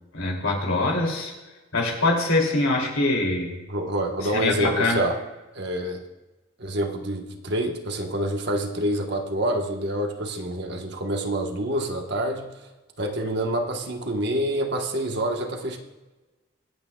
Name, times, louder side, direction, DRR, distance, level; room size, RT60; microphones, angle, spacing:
voice 1, 0.1-1.3 1.7-3.5 4.3-5.0, left 2 dB, 80° left, 0 dB, 2.9 m, -23 dB
voice 2, 3.7-5.2 5.5-6.0 6.6-12.5 13.0-15.8, right 1 dB, 55° right, 3 dB, 1.3 m, -27 dB
24.5 x 8.8 x 2.3 m, 1.1 s
head